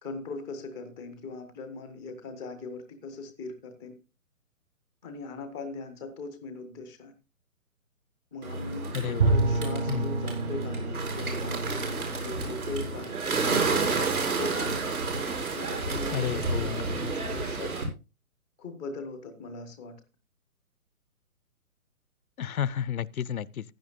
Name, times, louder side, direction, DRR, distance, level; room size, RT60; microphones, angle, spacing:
voice 1, 0.0-4.0 5.0-7.1 8.3-13.1 13.6-14.9 15.5-17.7 18.6-19.9, left 3 dB, 5° right, 0.5 m, -40 dB
Bird, 8.4-17.8, right 3 dB, 75° right, 5.8 m, -30 dB
voice 2, 8.9-9.3 9.9-10.1 16.1-17.1 22.4-23.6, left 9 dB, 70° left, 0.6 m, -31 dB
Bowed string instrument, 9.2-14.0, right 3 dB, 50° right, 2.2 m, -30 dB
15.5 x 10.5 x 2.5 m
figure-of-eight pair, 135°, 44 cm